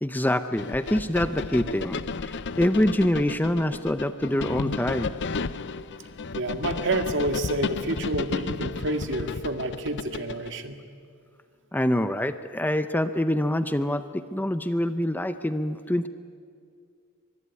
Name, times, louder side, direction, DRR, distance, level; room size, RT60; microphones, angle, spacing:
voice 1, 0.0-5.2 11.7-16.1, left 1 dB, 10° left, 10 dB, 0.6 m, -25 dB
sound 1, 0.6-10.5, left 4 dB, 55° left, 0.6 m, -33 dB
voice 2, 6.4-10.8, right 1 dB, 55° right, 6 dB, 1.9 m, -29 dB
23.5 x 22.5 x 9.7 m, 2.3 s
head